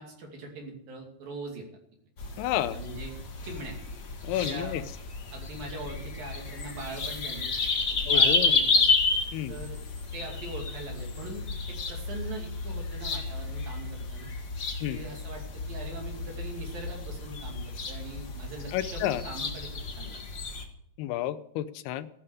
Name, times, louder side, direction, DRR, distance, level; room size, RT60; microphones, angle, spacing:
voice 1, 0.0-1.7 2.7-3.2 3.4-3.8 4.4-4.8 5.3-7.5 7.9-8.8 9.5-9.8 10.1-14.3 14.8-20.2, right 2 dB, 65° right, 0 dB, 4.3 m, -41 dB
sound 1, 2.2-20.6, left 3 dB, 60° left, 1.0 m, -31 dB
voice 2, 2.4-2.8 4.2-4.8 8.1-8.5 9.3-9.6 14.8-15.0 18.7-19.2 21.0-22.1, left 13 dB, 85° left, 14 dB, 2.7 m, -30 dB
15.5 x 12.0 x 4.9 m, 0.75 s
omnidirectional pair, 4.5 m